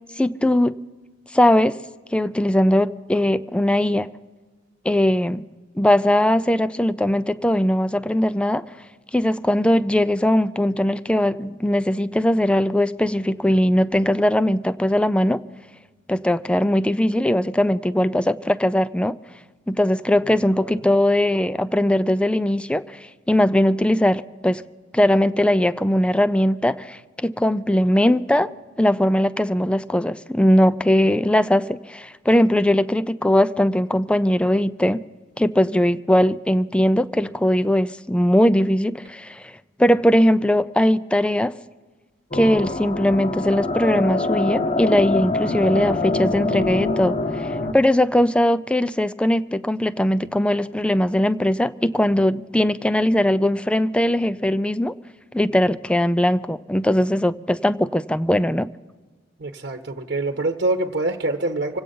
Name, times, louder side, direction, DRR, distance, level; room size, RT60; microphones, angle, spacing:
voice 1, 0.2-0.8 1.3-1.8 2.1-4.1 4.8-5.4 5.8-8.6 9.1-15.4 16.1-19.2 19.7-24.6 24.9-28.5 28.8-35.0 35.4-39.4 39.8-41.5 42.3-54.9 55.3-58.7, left 1 dB, 5° left, 0.4 m, -20 dB
sound 1, 42.3-47.7, left 2 dB, 35° left, 0.8 m, -24 dB
voice 2, 59.4-61.8, right 2 dB, 55° right, 1.1 m, -25 dB
26.0 x 8.9 x 5.4 m
head